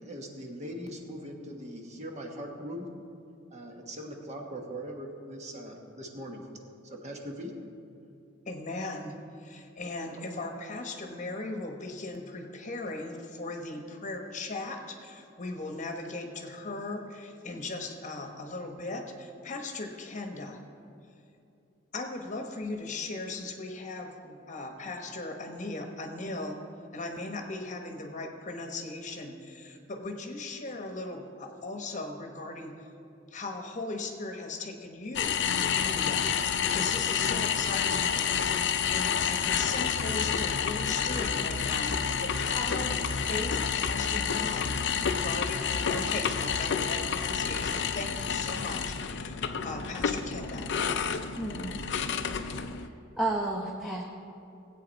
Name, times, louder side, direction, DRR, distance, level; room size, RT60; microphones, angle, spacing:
voice 1, 0.0-2.9 3.5-6.5 6.8-7.5, equal, 35° right, 2 dB, 1.2 m, -40 dB
voice 2, 8.5-20.6 21.9-26.6 26.9-32.9 33.3-36.3 36.6-38.3 38.6-50.7, left 2 dB, 40° left, 4 dB, 1.1 m, -38 dB
sound 1, 35.2-52.9, left 7 dB, 60° left, 0.5 m, -29 dB
voice 3, 51.4-51.8 52.4-52.7 53.2-54.0, right 2 dB, ahead, -3 dB, 0.8 m, -32 dB
17.0 x 8.5 x 4.1 m, 2.7 s
head